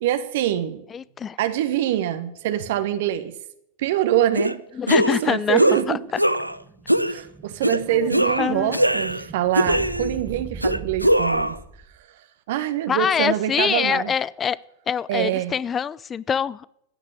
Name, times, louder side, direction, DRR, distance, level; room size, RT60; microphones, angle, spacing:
voice 1, 0.0-0.8 1.4-3.4 3.8-4.6 4.9-6.0 7.1-11.6 12.5-14.1 15.1-15.5, right 12 dB, 55° right, 9 dB, 1.4 m, -24 dB
voice 2, 0.9-1.4 4.8-5.6 5.9-6.0 8.4-8.8 12.9-14.6 14.9-16.7, left 7 dB, 20° left, 21 dB, 0.6 m, -24 dB
sound 1, 4.4-4.5 4.9-5.2 5.6-5.8 6.2-6.6 6.9-7.2 7.6-7.8 8.1-9.2 9.5-10.2 10.6-11.6, equal, 90° right, 0.5 m, -21 dB
Explosion, 5.9-12.0, right 4 dB, 15° right, 1.1 m, -40 dB
15.5 x 10.0 x 8.4 m, 0.76 s
figure-of-eight pair, 90°, 0 cm